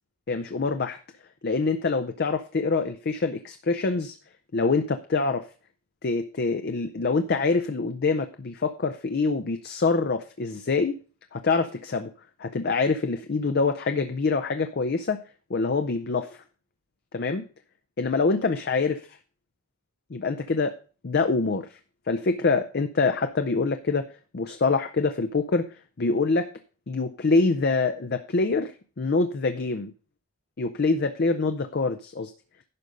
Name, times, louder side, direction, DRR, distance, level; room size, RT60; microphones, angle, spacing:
voice 1, 0.3-1.0 1.4-4.2 4.5-5.5 6.0-11.0 11.3-12.1 12.4-15.2 15.5-16.4 17.1-17.5 18.0-19.0 20.1-20.7 21.0-21.7 22.1-24.1 24.3-25.7 26.0-26.5 26.9-28.7 29.0-29.9 30.6-32.3, left 4 dB, 50° left, 8 dB, 0.5 m, -25 dB
11.0 x 5.4 x 5.1 m, 0.38 s
head